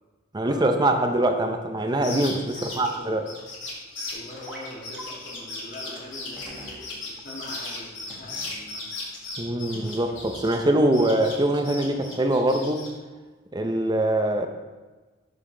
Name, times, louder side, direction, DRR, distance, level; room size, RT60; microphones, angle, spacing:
voice 1, 0.3-3.2 9.4-12.8 13.5-14.5, right 1 dB, 20° right, 5 dB, 0.6 m, -23 dB
sound 1, 1.9-10.7 10.9-12.9, left 3 dB, 65° left, 2.7 m, -37 dB
voice 2, 2.6-2.9 4.1-8.8, left 1 dB, 50° left, -3 dB, 1.7 m, -42 dB
sound 2, 4.5-4.7 5.0-5.1 5.7-5.8 6.4-6.8 8.1-8.6 9.7-10.4, right 1 dB, 5° right, 1.1 m, -44 dB
7.2 x 7.1 x 3.8 m, 1.3 s
head